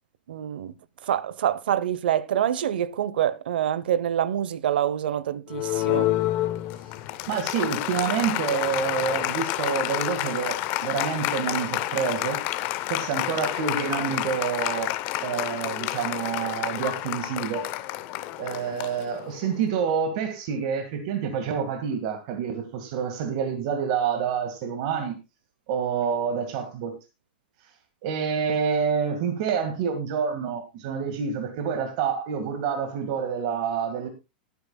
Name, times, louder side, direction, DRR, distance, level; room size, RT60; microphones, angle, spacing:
voice 1, 0.3-0.7 1.0-6.1, right 10 dB, 85° right, 0.9 m, -26 dB
Applause, 5.5-19.6, left 15 dB, 35° left, 0.8 m, -29 dB
voice 2, 7.3-12.4 12.9-14.9 15.2-17.7 18.4-25.2 25.7-26.9 28.0-34.1, right 7 dB, 45° right, 1.8 m, -28 dB
20.0 x 9.5 x 2.3 m
supercardioid pair, 165°, 5 cm